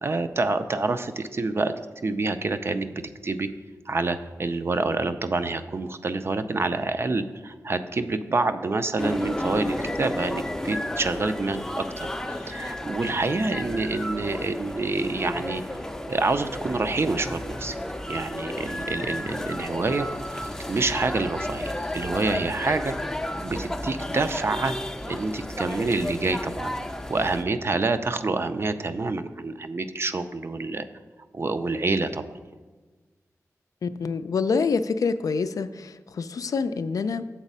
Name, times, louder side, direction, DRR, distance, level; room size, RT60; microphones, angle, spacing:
voice 1, 0.0-1.7 2.0-3.5 3.9-12.1 12.4-15.6 16.1-17.8 18.1-20.1 20.7-22.9 23.4-24.7 25.0-26.7 27.1-30.9 31.3-32.2, right 3 dB, 45° right, 10 dB, 0.4 m, -27 dB
sound 1, 9.0-27.4, left 1 dB, 10° left, 0.5 m, -32 dB
voice 2, 33.8-37.2, left 5 dB, 75° left, 11 dB, 0.3 m, -26 dB
7.3 x 4.0 x 5.4 m, 1.3 s
wide cardioid pair, 70°, 6 cm